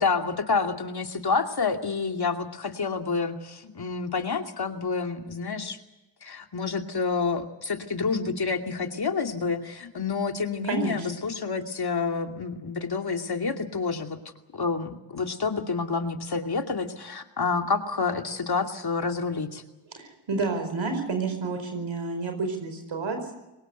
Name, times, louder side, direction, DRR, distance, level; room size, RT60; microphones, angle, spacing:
voice 1, 0.0-5.8 6.2-14.2 14.5-19.6, left 4 dB, 50° left, 5 dB, 2.7 m, -28 dB
voice 2, 10.6-11.1 19.9-23.3, right 4 dB, 65° right, 6 dB, 5.0 m, -30 dB
23.5 x 19.5 x 8.0 m, 0.99 s
cardioid pair, 50°, 49 cm